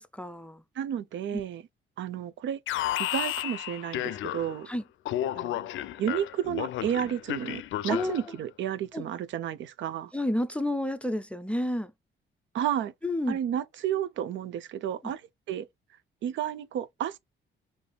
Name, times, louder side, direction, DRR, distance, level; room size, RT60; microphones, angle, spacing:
voice 1, 0.0-0.6 1.3-1.4 4.7-4.8 7.9-8.3 8.9-9.0 10.1-11.9 13.0-13.4 15.0-15.1, left 1 dB, 5° left, 0.4 m, -30 dB
voice 2, 0.8-1.6 2.0-2.6 3.0-4.7 5.3-5.7 6.0-10.1 12.5-12.9 13.3-15.2 15.5-15.7 16.2-17.2, right 10 dB, 70° right, 0.6 m, -32 dB
Alarm, 2.7-4.7 5.0-8.3, left 13 dB, 75° left, 0.5 m, -32 dB
5.0 x 2.6 x 2.2 m
cardioid pair, 90°, 20 cm